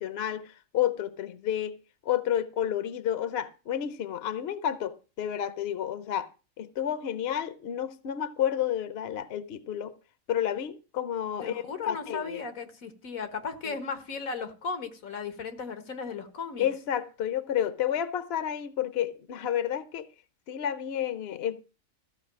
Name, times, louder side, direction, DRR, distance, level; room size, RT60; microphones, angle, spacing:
voice 1, 0.0-1.8 2.0-6.3 6.6-9.9 10.3-12.4 13.6-13.8 16.6-20.1 20.5-21.6, left 10 dB, 55° left, 0.8 m, -30 dB
voice 2, 11.4-16.7, left 5 dB, 90° left, 1.9 m, -36 dB
14.0 x 5.4 x 7.3 m
omnidirectional pair, 1.4 m